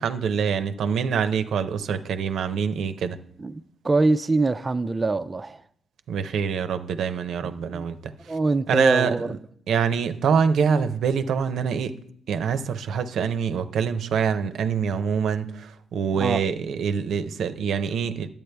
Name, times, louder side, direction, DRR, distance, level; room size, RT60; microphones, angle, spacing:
voice 1, 0.0-3.2 6.1-8.1 8.7-9.4 9.7-12.0 12.3-18.3, right 6 dB, 75° right, 0.6 m, -25 dB
voice 2, 3.4-5.6 7.4-7.9 8.3-9.3 16.1-16.4, right 3 dB, 25° right, 0.4 m, -24 dB
10.5 x 8.6 x 3.4 m
cardioid pair, 75°, 0 cm